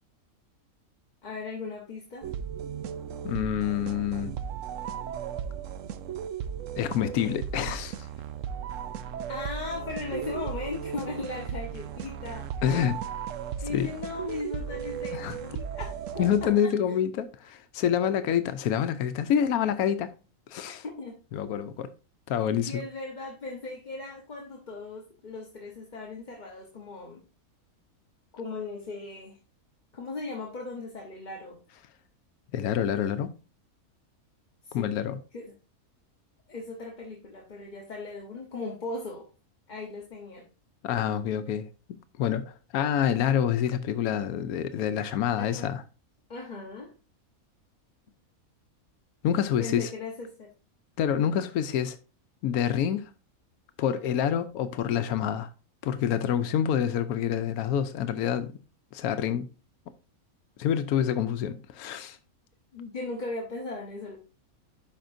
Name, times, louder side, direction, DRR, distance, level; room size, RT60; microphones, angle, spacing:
voice 1, 1.2-2.3 9.3-12.5 13.6-17.0 20.7-21.2 22.6-27.2 28.3-29.4 29.9-31.6 34.6-35.0 35.3-35.6 36.5-39.2 39.7-40.4 45.4-45.7 46.3-46.9 49.6-50.5 62.7-64.2, left 3 dB, 35° left, 1.1 m, -38 dB
sound 1, 2.2-16.5, right 8 dB, 70° right, 0.9 m, -36 dB
voice 2, 3.2-4.3 6.8-8.1 12.6-13.0 13.7-13.9 15.1-15.4 16.2-20.1 20.5-20.8 21.3-21.9 22.3-22.8 32.5-33.3 34.7-35.2 40.8-45.8 49.2-49.9 51.0-52.0 52.4-53.1 53.8-55.5 55.8-58.5 58.9-59.5 60.6-62.2, left 9 dB, 90° left, 1.1 m, -27 dB
12.0 x 5.0 x 2.6 m
omnidirectional pair, 1.5 m